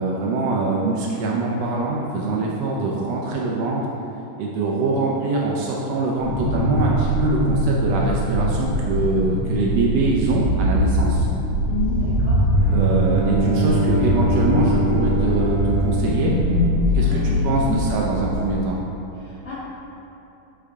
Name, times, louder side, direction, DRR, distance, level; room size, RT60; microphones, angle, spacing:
voice 1, 0.0-3.8 4.4-11.3 12.7-16.3 16.9-18.8, right 3 dB, 85° right, -3 dB, 1.4 m, -23 dB
sound 1, 6.2-18.6, equal, 80° left, 3.1 m, -22 dB
voice 2, 11.7-12.5 17.0-17.8 19.1-19.5, left 5 dB, 40° left, -14 dB, 2.0 m, -30 dB
Bowed string instrument, 12.5-17.4, right 1 dB, 25° left, 1.3 m, -24 dB
6.6 x 5.5 x 4.8 m, 2.8 s
omnidirectional pair, 3.8 m